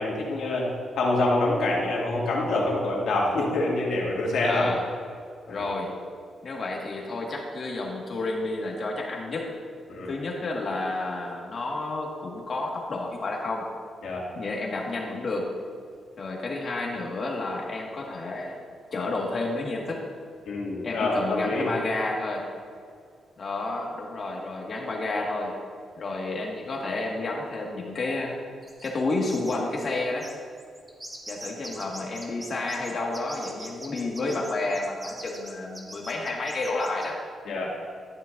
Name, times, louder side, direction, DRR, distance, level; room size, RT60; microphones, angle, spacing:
voice 1, 0.0-4.7 5.5-5.7 9.9-10.1 14.0-14.3 20.5-21.7 37.5-37.7, left 2 dB, 85° left, -3 dB, 2.2 m, -26 dB
voice 2, 4.4-4.8 5.5-5.9 6.4-9.6 10.0-13.7 14.4-15.6 16.2-18.6 18.9-20.1 20.8-22.5 23.4-25.6 26.0-28.4 28.8-30.3 31.3-37.2, left 2 dB, 45° left, -1 dB, 1.8 m, -30 dB
sound 1, 28.6-29.0 29.3-29.6 29.8-29.9 30.2-37.1, right 1 dB, 20° right, 1.2 m, -42 dB
12.5 x 10.5 x 2.6 m, 2.2 s
wide cardioid pair, 140°, 0 cm